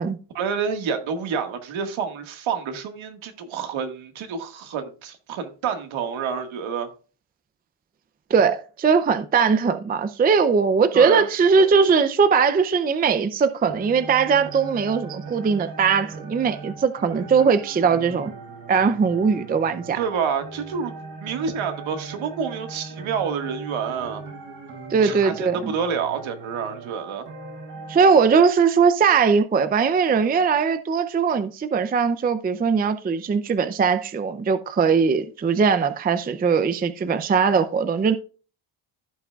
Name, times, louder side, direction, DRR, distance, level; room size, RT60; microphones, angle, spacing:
voice 1, 0.3-6.9 10.9-11.3 20.0-20.9 21.2-24.2 25.0-27.3, right 6 dB, 70° right, 1.7 m, -28 dB
voice 2, 8.3-18.3 18.7-20.0 24.9-25.7 27.9-38.2, right 5 dB, 20° right, 0.4 m, -20 dB
sound 1, 13.6-28.0, right 4 dB, 50° right, 3.6 m, -39 dB
15.0 x 5.8 x 2.3 m
cardioid pair, 140°, 49 cm